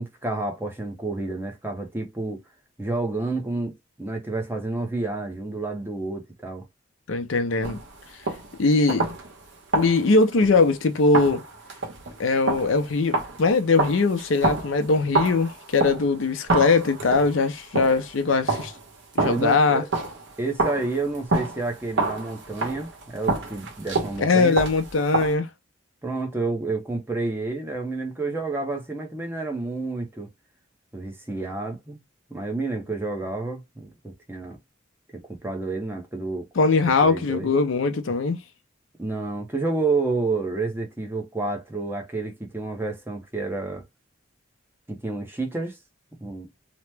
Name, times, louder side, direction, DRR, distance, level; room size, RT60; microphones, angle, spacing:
voice 1, 0.0-2.4 2.8-6.7 19.2-19.9 20.4-24.6 26.0-30.3 30.9-32.0 32.3-34.6 35.1-36.5 37.0-37.5 39.0-43.8 44.9-45.8 46.2-46.5, right 3 dB, 10° right, 0.6 m, -29 dB
voice 2, 7.1-7.8 8.6-9.1 9.7-11.4 12.2-18.7 19.2-19.8 24.2-25.5 36.6-38.4, left 3 dB, 80° left, 0.5 m, -21 dB
sound 1, 7.6-8.6 8.9-9.4 9.7-10.8 11.1-16.2 16.5-18.1 18.5-20.3 20.6-25.3, right 3 dB, 70° right, 1.2 m, -28 dB
2.9 x 2.1 x 3.3 m
head